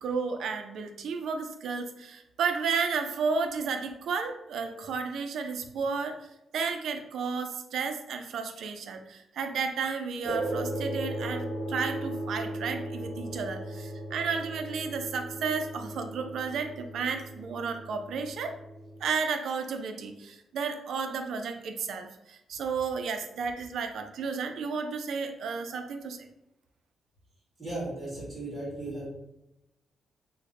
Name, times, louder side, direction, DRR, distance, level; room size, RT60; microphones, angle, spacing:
voice 1, 0.0-6.2 6.5-18.6 19.0-26.3, right 5 dB, 65° right, 6 dB, 0.4 m, -32 dB
sound 1, 10.2-19.0, right 1 dB, 45° right, 1.1 m, -37 dB
voice 2, 27.6-29.1, right 2 dB, 5° right, -10 dB, 1.4 m, -36 dB
3.3 x 2.1 x 3.6 m, 0.88 s
wide cardioid pair, 170°, 0 cm